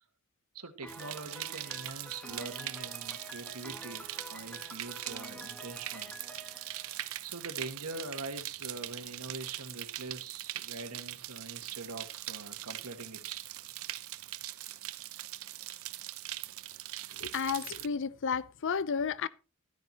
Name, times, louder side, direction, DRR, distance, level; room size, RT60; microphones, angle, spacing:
voice 1, 0.5-6.2 7.2-13.4 14.9-15.1, right 3 dB, 90° right, 1.7 m, -43 dB
Piano, 0.8-7.6, left 1 dB, 5° left, 1.3 m, -49 dB
sound 1, 0.9-17.9, right 14 dB, 65° right, 0.7 m, -42 dB
voice 2, 17.1-19.3, left 6 dB, 60° left, 0.6 m, -32 dB
13.5 x 12.5 x 2.9 m
head